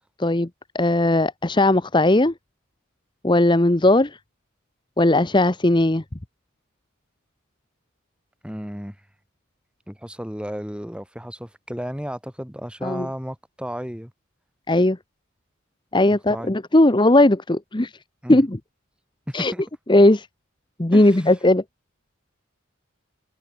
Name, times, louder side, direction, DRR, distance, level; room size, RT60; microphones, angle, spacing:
voice 1, 0.7-2.3 3.2-4.2 5.0-6.0 12.8-13.1 14.7-15.0 15.9-17.9 18.3-18.6 19.3-19.5 19.9-20.3 20.8-21.6, left 1 dB, 20° left, 0.9 m, -17 dB
voice 2, 8.4-8.9 9.9-14.1 16.1-16.6 18.2-18.4 19.3-19.6 20.9-21.3, equal, 5° right, 7.9 m, -33 dB
head